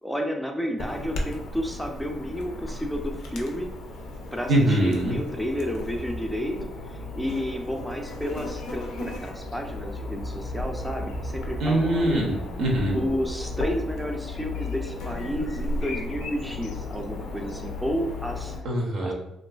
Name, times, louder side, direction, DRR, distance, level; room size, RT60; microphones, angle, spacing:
voice 1, 0.0-3.7 4.3-6.6 6.9-12.2 12.9-18.6 19.0-19.1, equal, ahead, 2 dB, 0.4 m, -31 dB
Chirp tweet / Buzz, 0.8-18.6, left 2 dB, 85° left, 0.4 m, -35 dB
voice 2, 4.5-5.1 11.6-13.0 18.6-19.1, right 1 dB, 75° right, -1 dB, 0.6 m, -23 dB
2.4 x 2.3 x 2.3 m, 0.86 s
cardioid pair, 90°, 0 cm